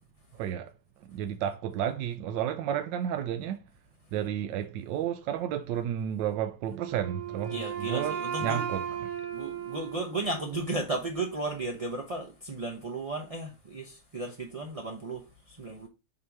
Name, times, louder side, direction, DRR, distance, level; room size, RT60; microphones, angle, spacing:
voice 1, 0.3-0.7 1.1-3.6 4.1-8.8, right 10 dB, 85° right, 1.3 m, -32 dB
Wind instrument woodwind instrument, 6.8-10.7, right 8 dB, 65° right, 1.7 m, -36 dB
voice 2, 7.5-8.7 9.3-15.9, right 2 dB, 35° right, 0.6 m, -34 dB
7.4 x 2.9 x 4.6 m
omnidirectional pair, 1.9 m